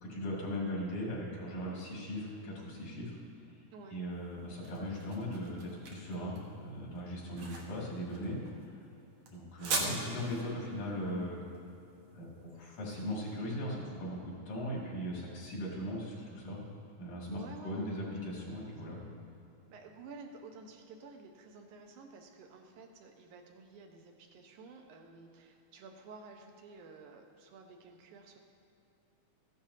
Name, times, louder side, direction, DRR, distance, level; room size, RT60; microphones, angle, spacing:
voice 1, 0.0-3.1 3.9-8.4 8.7-8.8 9.3-11.4 12.1-16.6 17.0-19.0, equal, 80° left, -4 dB, 3.8 m, -39 dB
sound 1, 4.1-13.2, right 3 dB, 60° right, 1.7 m, -41 dB
voice 2, 17.3-18.1 18.6-18.9 19.7-28.4, right 4 dB, 85° right, 3 dB, 2.4 m, -52 dB
15.0 x 10.5 x 2.8 m, 2.8 s
omnidirectional pair, 3.4 m